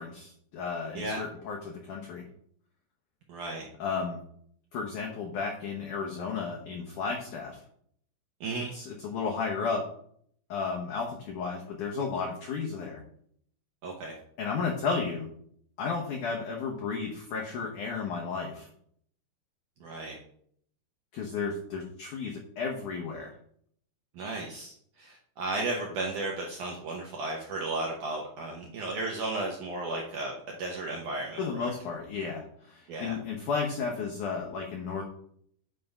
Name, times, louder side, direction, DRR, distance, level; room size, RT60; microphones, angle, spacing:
voice 1, 0.0-2.2 3.8-4.2 4.7-7.6 8.7-9.9 10.5-13.0 14.4-15.3 15.8-18.7 21.1-23.3 31.4-35.0, left 5 dB, 80° left, 0 dB, 1.8 m, -33 dB
voice 2, 3.3-3.7 8.4-8.7 13.8-14.2 19.8-20.2 24.1-31.7 32.9-33.2, right 2 dB, 75° right, -1 dB, 1.9 m, -34 dB
9.3 x 3.5 x 5.3 m, 0.63 s
omnidirectional pair, 4.9 m